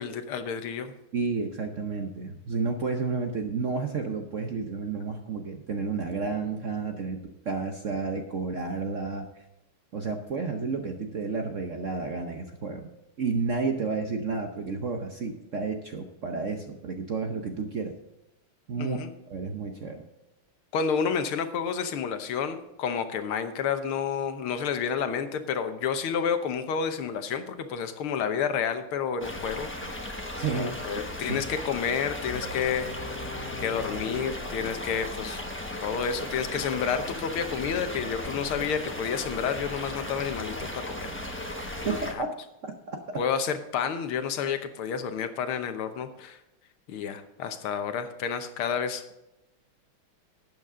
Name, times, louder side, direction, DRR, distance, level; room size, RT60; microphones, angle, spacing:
voice 1, 0.0-0.9 18.8-19.1 20.7-29.7 30.5-32.9 33.6-35.4 35.8-42.2 43.2-46.4 46.9-49.0, left 7 dB, 85° left, 9 dB, 1.9 m, -30 dB
voice 2, 1.1-9.3 9.9-12.9 13.2-18.0 18.7-19.0 19.3-20.0 30.3-31.4 41.8-42.3 42.6-43.0, right 4 dB, 55° right, 4 dB, 0.9 m, -31 dB
sound 1, 29.2-42.1, left 1 dB, 10° left, 0.7 m, -36 dB
sound 2, 32.3-35.4, left 3 dB, 65° left, 1.5 m, -42 dB
12.0 x 9.0 x 3.7 m, 0.94 s
omnidirectional pair, 2.3 m